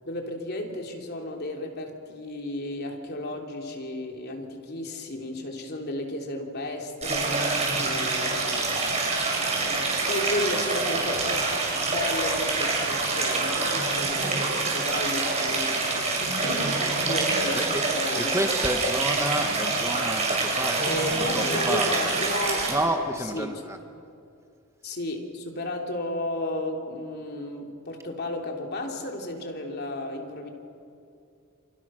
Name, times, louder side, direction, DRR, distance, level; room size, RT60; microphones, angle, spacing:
voice 1, 0.0-9.1 9.6-11.4 11.7-18.4 20.8-22.7 23.2-23.6 24.8-30.5, left 1 dB, 50° left, 2 dB, 3.4 m, -33 dB
Stream, 7.0-22.7, right 3 dB, 30° right, 6.9 m, -26 dB
voice 2, 17.5-17.9 18.1-21.0 21.3-22.0 22.7-23.8, right 1 dB, 15° right, 5 dB, 1.3 m, -30 dB
29.0 x 28.0 x 6.4 m, 2.5 s
head